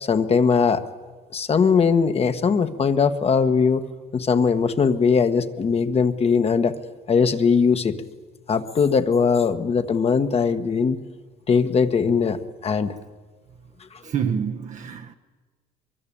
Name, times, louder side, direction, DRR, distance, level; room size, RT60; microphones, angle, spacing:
voice 1, 0.0-0.8 1.3-3.8 4.1-6.7 7.1-8.0 8.5-11.0 11.5-12.9, left 5 dB, 35° left, 1.4 m, -20 dB
voice 2, 14.0-15.1, right 7 dB, 45° right, 1.1 m, -27 dB
23.5 x 23.0 x 8.7 m
cardioid pair, 110°, 17 cm